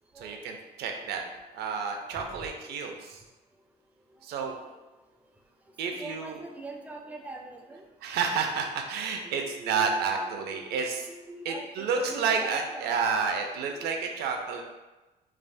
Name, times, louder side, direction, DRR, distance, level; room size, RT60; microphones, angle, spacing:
voice 1, 0.2-1.2 1.5-3.2 4.2-4.5 5.8-6.4 8.0-11.1 11.4-14.6, right 5 dB, 75° right, 3 dB, 0.5 m, -30 dB
voice 2, 5.8-7.8 9.2-10.1 10.5-10.6 11.1-13.3 13.7-14.1, right 2 dB, 10° right, 1 dB, 0.3 m, -44 dB
3.3 x 2.0 x 2.5 m, 1.1 s
cardioid pair, 110°, 17 cm